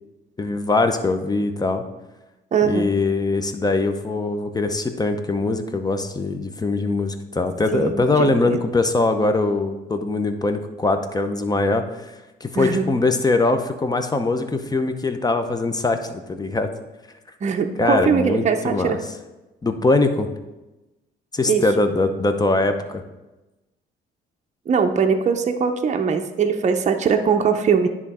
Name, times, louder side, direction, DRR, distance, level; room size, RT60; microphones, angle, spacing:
voice 1, 0.4-1.8 2.6-12.1 12.4-16.7 17.8-19.0 19.6-20.3 21.3-23.0, left 3 dB, 20° left, 7 dB, 0.7 m, -22 dB
voice 2, 2.5-2.9 7.7-8.6 12.6-12.8 17.4-19.0 21.5-21.6 24.7-27.9, right 6 dB, 35° right, 4 dB, 0.6 m, -21 dB
10.0 x 3.6 x 4.2 m, 1.1 s
cardioid pair, 90°, 20 cm